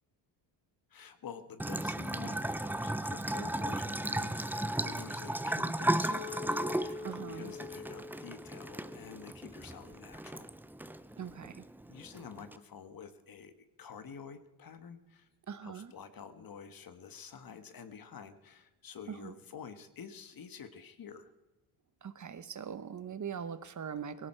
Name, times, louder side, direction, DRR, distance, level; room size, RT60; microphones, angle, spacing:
voice 1, 0.9-10.5 11.9-15.3 15.6-21.3, left 6 dB, 45° left, 10 dB, 1.5 m, -49 dB
Bathtub (filling or washing) / Trickle dribble, 1.6-12.6, right 1 dB, 5° right, 0.6 m, -36 dB
Chink clink, 6.1-10.4, left 5 dB, 30° left, 2.3 m, -46 dB
voice 2, 7.0-7.5 11.2-11.6 15.5-15.9 19.1-19.3 22.0-24.3, right 7 dB, 40° right, 13 dB, 1.0 m, -41 dB
18.0 x 16.5 x 4.4 m, 1.1 s
cardioid pair, 80°, 47 cm